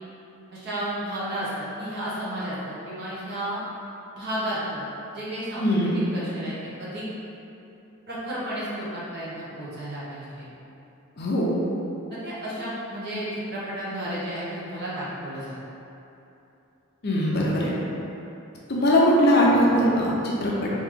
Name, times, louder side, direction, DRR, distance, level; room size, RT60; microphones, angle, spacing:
voice 1, 0.5-3.6 4.1-4.9 5.1-5.7 5.9-7.0 8.1-10.5 12.1-15.5, right 1 dB, 45° right, -9 dB, 1.0 m, -32 dB
voice 2, 5.6-6.0 11.2-11.5 17.0-17.7 18.7-20.7, equal, 45° left, -5 dB, 0.6 m, -21 dB
3.5 x 3.1 x 3.7 m, 2.9 s
head